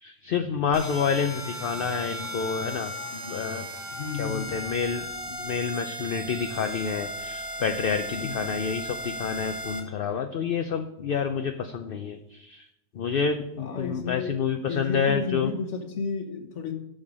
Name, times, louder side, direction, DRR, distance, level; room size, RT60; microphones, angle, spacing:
voice 1, 0.0-3.7 4.1-12.7 12.9-15.5, left 6 dB, 55° left, 7 dB, 0.7 m, -29 dB
sound 1, 0.7-9.8, equal, 55° right, 2.7 m, -36 dB
voice 2, 3.9-4.6 8.2-8.5 13.6-14.4 14.7-16.7, left 5 dB, 70° left, 5 dB, 1.5 m, -32 dB
8.9 x 6.5 x 5.3 m, 0.84 s
omnidirectional pair, 1.3 m